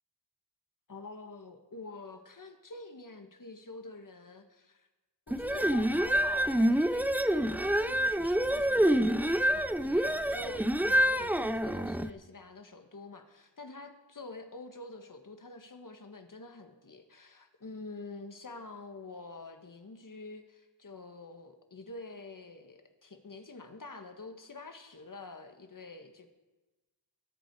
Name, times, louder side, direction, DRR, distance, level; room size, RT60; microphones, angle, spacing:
voice 1, 0.9-4.9 5.3-26.3, left 3 dB, 45° left, 6 dB, 1.6 m, -47 dB
sound 1, 5.3-12.1, right 1 dB, 5° right, 0.5 m, -27 dB
20.5 x 7.8 x 4.8 m, 1.2 s
cardioid pair, 45°, 44 cm